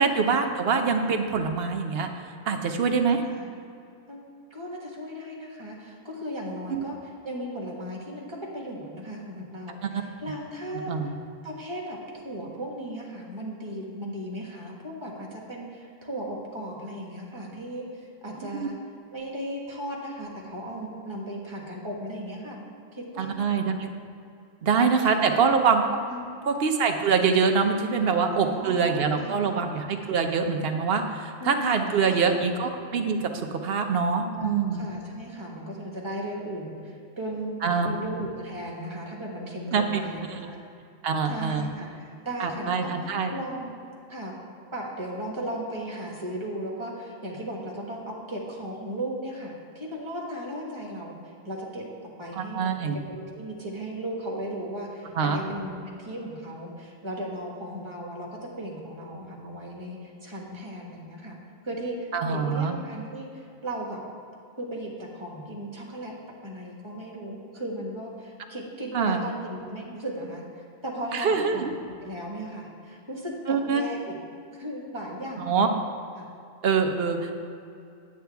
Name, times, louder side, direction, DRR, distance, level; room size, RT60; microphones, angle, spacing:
voice 1, 0.0-2.1 2.5-3.2 6.7-6.8 10.9-11.1 18.4-18.7 23.2-23.9 24.6-25.8 26.5-33.3 33.6-34.8 37.6-38.0 39.7-40.0 40.3-40.4 41.0-41.7 42.4-43.3 52.4-53.0 55.2-55.4 62.1-62.7 68.9-69.2 71.1-71.7 73.5-73.8 75.4-75.7 76.6-77.3, right 5 dB, 55° right, 5 dB, 0.9 m, -24 dB
voice 2, 2.8-3.5 4.1-4.2 4.5-11.1 11.4-18.7 19.1-22.6 22.9-23.5 24.8-25.4 26.1-26.5 28.3-29.6 31.4-32.5 34.3-40.6 41.2-43.7 44.1-44.3 44.7-52.7 53.1-61.4 61.6-64.0 64.6-66.1 66.4-74.1 74.6-75.7 76.2-76.3, right 1 dB, 25° right, -2 dB, 1.5 m, -36 dB
9.0 x 8.4 x 3.5 m, 2.5 s
omnidirectional pair, 1.3 m